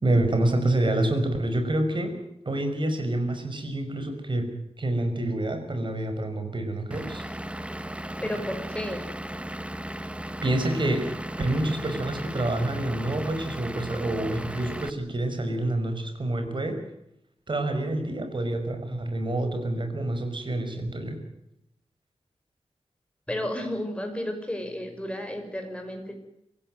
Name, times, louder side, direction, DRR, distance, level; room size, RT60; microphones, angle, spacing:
voice 1, 0.0-2.1 2.4-4.5 4.8-7.2 10.4-11.0 11.4-16.8 17.5-21.2, right 1 dB, 45° right, 6 dB, 5.6 m, -27 dB
Vehicle / Engine, 6.9-14.9, right 1 dB, 10° right, 1.1 m, -36 dB
voice 2, 8.2-9.0 23.3-26.2, left 1 dB, 10° left, 4 dB, 5.9 m, -32 dB
25.5 x 15.5 x 9.3 m, 0.81 s
wide cardioid pair, 110°, 11 cm